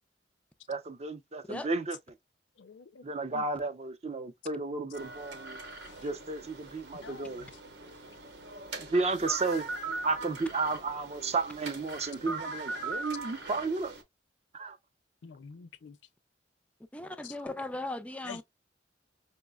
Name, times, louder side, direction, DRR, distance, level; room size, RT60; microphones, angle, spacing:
voice 1, 0.7-2.0 3.0-5.6 6.0-7.5 8.8-9.7 10.0-13.9 14.5-14.8, right 3 dB, 35° right, 0.6 m, -33 dB
voice 2, 2.6-3.0 3.3-3.4 5.9-6.0 7.0-7.5 15.2-16.0 17.2-17.3 18.2-18.4, left 6 dB, 90° left, 0.4 m, -47 dB
sound 1, 4.9-14.0, right 3 dB, 65° right, 0.9 m, -41 dB
voice 3, 16.9-18.4, left 2 dB, 10° left, 0.4 m, -37 dB
5.3 x 2.1 x 2.3 m
head